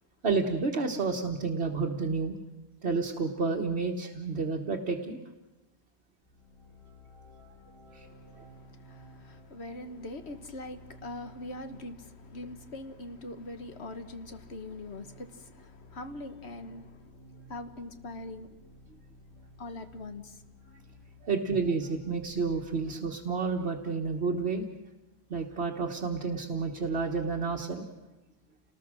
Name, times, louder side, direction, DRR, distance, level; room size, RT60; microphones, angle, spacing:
voice 1, 0.2-2.4 2.8-5.2 7.9-8.1 21.2-24.7 25.3-27.8, right 4 dB, 75° right, 1.6 m, -30 dB
sound 1, 6.2-22.7, left 1 dB, 30° left, 7.6 m, -54 dB
voice 2, 8.1-18.6 19.6-20.4, left 2 dB, 80° left, 1.7 m, -43 dB
29.5 x 20.0 x 6.3 m
omnidirectional pair, 1.1 m